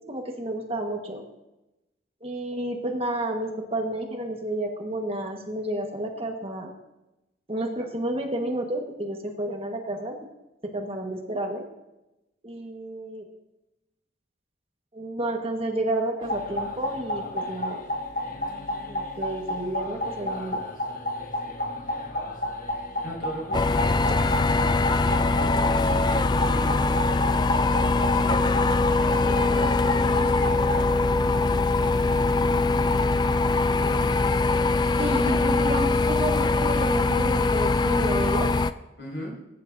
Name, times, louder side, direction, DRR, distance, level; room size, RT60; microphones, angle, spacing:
voice 1, 0.1-1.2 2.2-6.7 7.5-10.2 10.7-11.7 12.4-13.3 14.9-17.8 18.9-20.6 35.0-38.6, right 1 dB, 30° right, 2 dB, 1.4 m, -31 dB
sound 1, 16.2-30.8, left 1 dB, 45° left, 1.2 m, -32 dB
voice 2, 23.0-26.1 26.5-34.2 39.0-39.3, equal, 65° left, -3 dB, 5.2 m, -40 dB
sound 2, 23.5-38.7, left 3 dB, 25° left, 0.3 m, -22 dB
21.0 x 10.5 x 2.7 m, 0.98 s
head